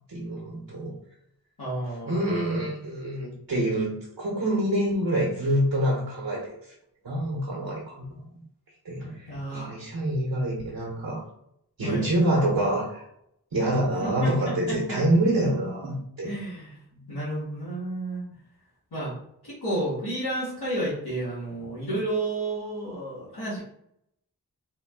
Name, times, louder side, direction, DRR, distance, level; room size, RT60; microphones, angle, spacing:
voice 1, 0.1-0.9 2.0-6.7 7.0-8.3 8.8-11.2 11.8-13.0 13.5-16.3 16.9-17.1, right 1 dB, 65° right, -2 dB, 1.0 m, -26 dB
voice 2, 1.6-2.4 9.3-9.7 11.8-12.1 14.0-14.8 16.2-16.8 17.1-18.2 18.9-19.1 19.4-23.6, right 1 dB, 90° left, -12 dB, 1.5 m, -31 dB
3.6 x 2.3 x 3.5 m, 0.74 s
wide cardioid pair, 45°, 38 cm